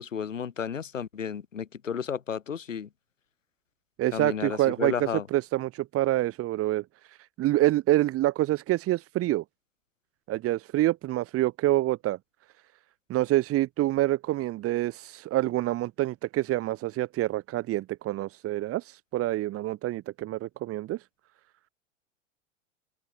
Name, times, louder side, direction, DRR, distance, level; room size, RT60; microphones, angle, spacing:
voice 1, 0.0-2.9 4.1-5.2, left 7 dB, 75° left, 4.6 m, -33 dB
voice 2, 4.0-9.4 10.3-12.2 13.1-21.0, right 16 dB, 35° right, 7.3 m, -27 dB
figure-of-eight pair, 90°, 39 cm